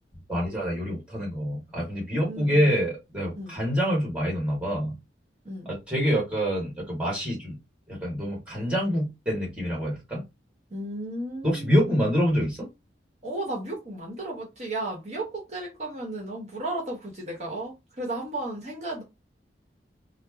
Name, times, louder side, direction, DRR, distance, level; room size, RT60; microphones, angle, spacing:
voice 1, 0.3-4.9 5.6-7.6 7.9-10.2 11.4-12.7, equal, 5° right, 1.4 m, -26 dB
voice 2, 2.2-2.7 3.4-3.6 5.4-5.7 10.7-11.9 13.2-19.0, right 2 dB, 40° right, 1.0 m, -34 dB
3.1 x 2.1 x 3.4 m
head